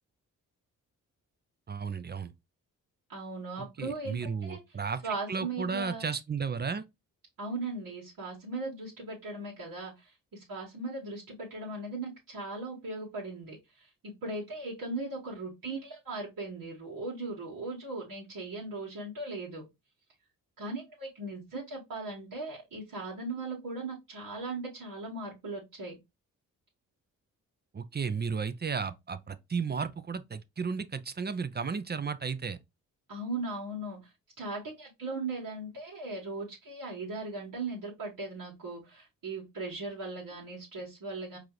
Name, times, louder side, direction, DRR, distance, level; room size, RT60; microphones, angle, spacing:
voice 1, 1.7-2.3 3.6-5.0 5.3-6.8 27.7-32.6, right 5 dB, 30° right, 0.5 m, -34 dB
voice 2, 3.1-4.6 5.0-6.0 7.4-19.6 20.6-26.0 33.1-34.1 34.4-41.4, right 3 dB, 70° right, 1.5 m, -38 dB
4.7 x 2.5 x 3.0 m
supercardioid pair, 45°, 35 cm